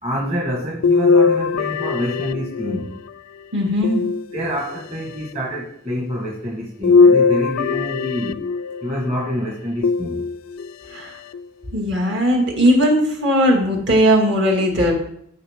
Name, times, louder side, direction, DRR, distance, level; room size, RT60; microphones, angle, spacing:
voice 1, 0.0-2.9 4.3-8.4 8.8-10.2, equal, 30° right, -3 dB, 1.4 m, -27 dB
sound 1, 0.8-3.1 3.8-4.8 6.8-8.9 9.8-10.7 11.3-11.4 12.8-12.9, left 4 dB, 85° left, 0.3 m, -19 dB
voice 2, 3.5-4.0 10.9-11.1 11.7-14.9, equal, 60° right, 0 dB, 2.0 m, -18 dB
14.0 x 4.7 x 3.6 m, 0.70 s
head